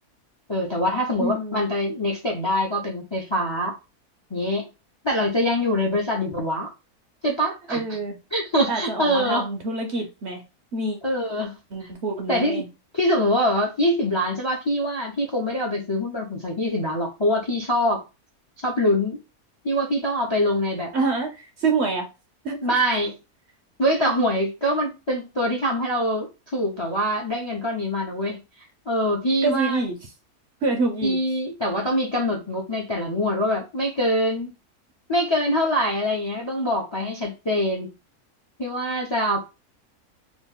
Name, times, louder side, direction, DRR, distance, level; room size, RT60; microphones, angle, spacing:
voice 1, 0.5-3.8 4.3-4.7 5.0-6.7 7.2-8.0 8.3-9.5 11.0-11.9 12.3-12.6 12.9-18.0 18.6-19.2 19.6-20.9 22.6-23.2 23.8-28.4 28.9-29.8 31.0-34.5 35.1-37.9 38.6-39.4, equal, 30° left, 0.5 m, -24 dB
voice 2, 1.2-1.7 7.7-8.2 8.7-10.4 10.7-11.0 11.7-12.7 20.9-22.1 22.4-22.6 29.4-29.9 30.6-31.2, right 3 dB, 60° right, 0.8 m, -26 dB
3.0 x 2.4 x 3.5 m
omnidirectional pair, 1.5 m